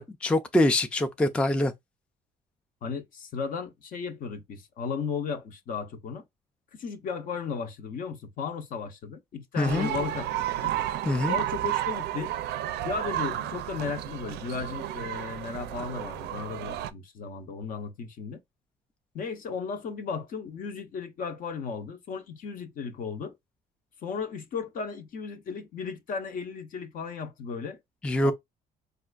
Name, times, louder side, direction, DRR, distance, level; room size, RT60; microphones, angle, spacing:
voice 1, 0.0-1.7 9.6-9.9 11.1-11.4 28.0-28.3, left 1 dB, 5° left, 0.3 m, -24 dB
voice 2, 2.8-6.2 6.7-10.7 11.3-12.3 12.8-18.4 19.1-23.3 24.0-27.8 28.2-28.3, left 5 dB, 55° left, 0.7 m, -35 dB
sound 1, 9.6-16.9, right 12 dB, 80° right, 0.4 m, -32 dB
4.1 x 2.4 x 2.3 m
cardioid pair, 110°, 17 cm